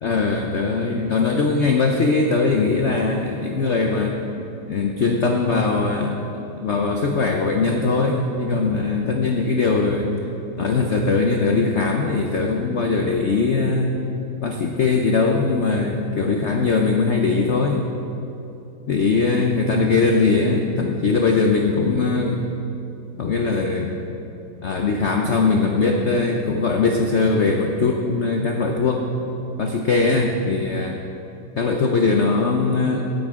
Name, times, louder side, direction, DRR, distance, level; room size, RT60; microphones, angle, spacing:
voice 1, 0.0-4.2 4.7-6.2 6.6-10.1 10.6-14.0 14.4-17.9 18.9-22.5 23.2-24.0 24.6-29.2 29.6-31.0 31.5-33.1, left 4 dB, 70° left, 2 dB, 0.6 m, -20 dB
16.0 x 10.5 x 3.7 m, 2.9 s
omnidirectional pair, 2.2 m